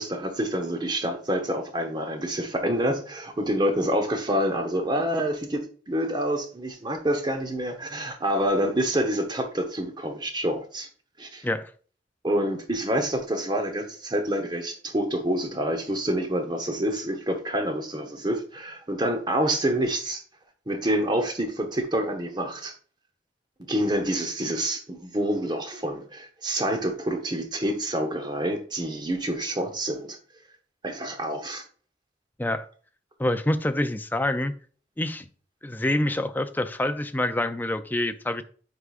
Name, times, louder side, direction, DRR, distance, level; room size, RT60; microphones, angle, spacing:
voice 1, 0.0-10.9 11.2-11.4 12.2-20.2 20.7-22.7 23.7-30.2 30.8-31.6, right 1 dB, 25° right, 0.9 m, -27 dB
voice 2, 33.2-34.5 35.0-35.3 35.6-38.4, left 1 dB, 10° left, 0.4 m, -26 dB
8.2 x 4.8 x 2.5 m
head